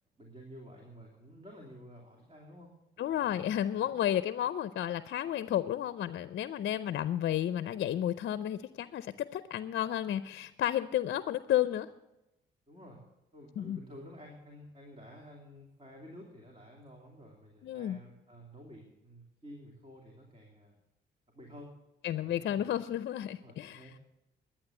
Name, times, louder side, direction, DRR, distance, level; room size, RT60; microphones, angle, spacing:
voice 1, 0.2-2.7 3.1-3.9 12.7-13.0 13.3-20.8 21.3-21.7 22.2-22.8 23.4-23.9, equal, 30° right, 0 dB, 2.8 m, -52 dB
voice 2, 3.0-11.9 13.6-13.8 17.6-18.0 22.0-23.9, left 11 dB, 60° left, 13 dB, 0.5 m, -32 dB
11.5 x 8.9 x 7.9 m, 0.92 s
cardioid pair, 90°, 20 cm